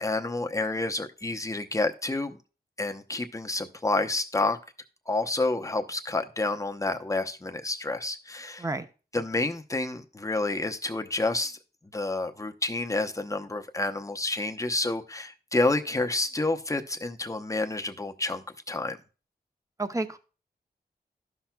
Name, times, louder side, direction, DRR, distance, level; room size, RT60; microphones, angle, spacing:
voice 1, 0.0-2.4 2.8-4.6 5.1-8.7 9.1-11.6 11.9-19.0, left 2 dB, 20° left, 6 dB, 0.8 m, -29 dB
voice 2, 19.8-20.2, right 2 dB, 20° right, 9 dB, 0.8 m, -30 dB
12.5 x 5.8 x 2.3 m, 0.34 s
cardioid pair, 60°, 17 cm